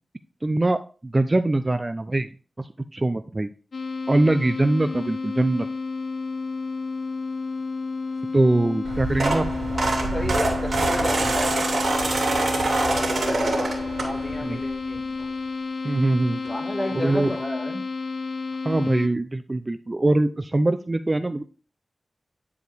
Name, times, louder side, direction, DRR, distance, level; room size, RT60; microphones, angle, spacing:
voice 1, 0.4-2.3 2.6-3.5 4.1-5.7 8.3-9.7 11.2-11.3 14.4-14.6 15.8-16.4 16.9-17.3 18.6-21.4, right 2 dB, 30° right, 10 dB, 0.4 m, -23 dB
sound 1, 3.7-19.1, left 4 dB, 70° left, 0.9 m, -31 dB
sound 2, 8.8-14.5 14.9-15.2 16.4-16.5 16.8-16.9 17.2-17.4, right 2 dB, 70° right, 2.9 m, -25 dB
voice 2, 9.7-15.1 16.5-17.9, left 1 dB, 15° left, 3 dB, 1.9 m, -32 dB
10.5 x 4.8 x 3.4 m, 0.36 s
wide cardioid pair, 75°, 0 cm